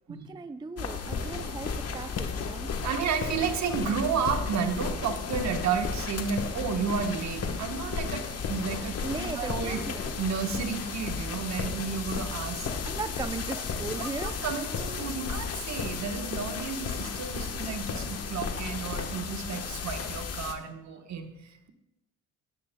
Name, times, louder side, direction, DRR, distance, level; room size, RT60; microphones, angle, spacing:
voice 1, 0.1-2.7 9.0-10.2 12.8-14.4 14.7-15.1, right 4 dB, 15° right, 10 dB, 0.4 m, -38 dB
sound 1, 0.8-20.5, left 5 dB, 55° left, 1.2 m, -34 dB
voice 2, 2.8-9.8 10.2-12.7 14.0-14.7 15.0-21.7, right 6 dB, 65° right, 6 dB, 1.2 m, -32 dB
17.0 x 10.5 x 2.2 m, 0.89 s
cardioid pair, 90°, 30 cm